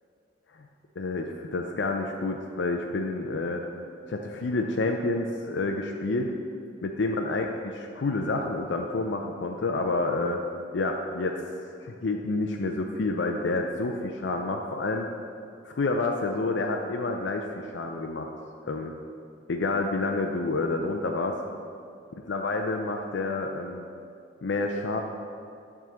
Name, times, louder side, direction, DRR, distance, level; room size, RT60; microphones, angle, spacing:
voice 1, 1.0-3.6 4.1-6.3 6.8-10.4 10.7-11.5 11.8-15.1 15.6-18.3 18.7-18.9 19.5-21.4 22.3-23.9 24.4-25.0, left 3 dB, 70° left, 2 dB, 0.5 m, -29 dB
9.0 x 3.7 x 6.9 m, 2.4 s
head